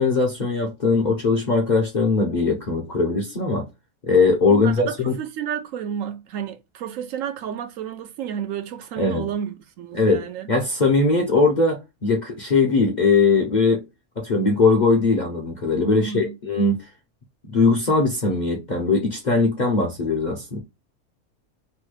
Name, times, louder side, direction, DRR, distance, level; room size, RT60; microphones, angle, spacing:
voice 1, 0.0-3.7 4.0-5.2 9.0-9.3 9.9-13.8 14.2-16.9 17.5-20.6, left 3 dB, 45° left, 0.6 m, -20 dB
voice 2, 4.5-10.5 15.9-16.4, right 9 dB, 70° right, 0.9 m, -31 dB
3.2 x 2.2 x 3.1 m
omnidirectional pair, 1.5 m